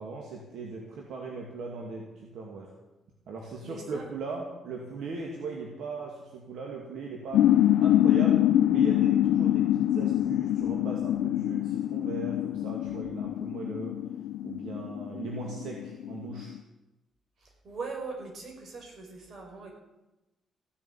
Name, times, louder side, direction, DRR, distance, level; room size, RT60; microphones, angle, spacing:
voice 1, 0.0-2.7 3.3-7.5 7.8-14.0 14.4-16.5, right 4 dB, 75° right, 0 dB, 2.4 m, -39 dB
voice 2, 3.6-4.0 17.4-19.7, right 4 dB, 55° right, 1 dB, 5.2 m, -40 dB
sound 1, 7.3-16.6, left 12 dB, 80° left, 0.7 m, -25 dB
15.5 x 7.6 x 9.2 m, 1.0 s
cardioid pair, 90°, 0 cm